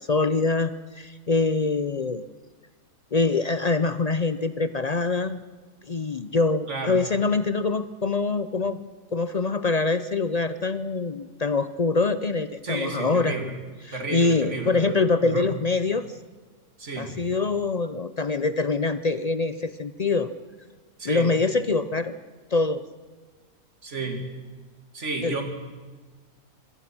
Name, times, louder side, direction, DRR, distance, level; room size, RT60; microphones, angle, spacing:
voice 1, 0.1-2.2 3.1-5.4 5.9-13.4 13.9-16.1 17.0-20.3 21.0-22.1 22.5-22.8 25.2-25.4, left 3 dB, 55° left, 12 dB, 0.4 m, -24 dB
voice 2, 6.7-7.0 12.6-13.5 13.9-15.5 16.8-17.2 21.0-21.3 23.8-24.2 24.9-25.4, right 3 dB, 50° right, 4 dB, 2.9 m, -32 dB
24.5 x 18.0 x 6.1 m, 1.4 s
omnidirectional pair, 1.6 m